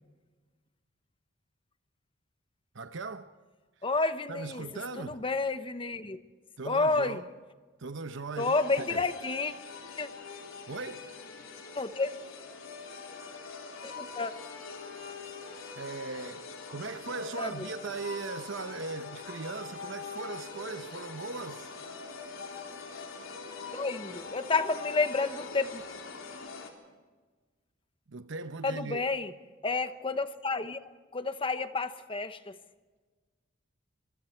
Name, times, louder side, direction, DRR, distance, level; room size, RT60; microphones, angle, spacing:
voice 1, 2.7-3.3 4.3-5.2 6.6-7.2 7.8-9.1 10.7-11.1 15.2-15.3 15.7-21.7 28.1-29.0, right 3 dB, 65° right, 0.9 m, -39 dB
voice 2, 3.8-4.6 5.0-6.2 6.6-7.2 8.4-9.5 10.0-10.1 11.8-12.1 13.8-14.3 17.4-17.5 23.7-25.8 28.6-29.3 29.6-30.8 31.1-32.5, left 3 dB, 25° left, 1.0 m, -30 dB
sound 1, 8.4-26.7, left 4 dB, 85° left, 3.5 m, -43 dB
25.5 x 23.0 x 4.6 m
head